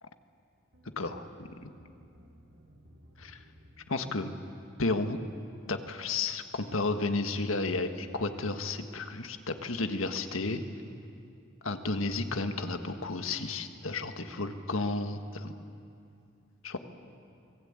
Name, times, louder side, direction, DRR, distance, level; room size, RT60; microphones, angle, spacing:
sound 1, 0.7-5.0, equal, 70° right, 3.4 m, -58 dB
voice 1, 1.0-1.7 3.2-3.4 3.9-4.3 4.8-5.2 5.7-10.6 11.6-15.5 16.6-16.8, left 3 dB, 90° left, 7 dB, 1.7 m, -32 dB
28.0 x 20.5 x 8.9 m, 2.5 s
head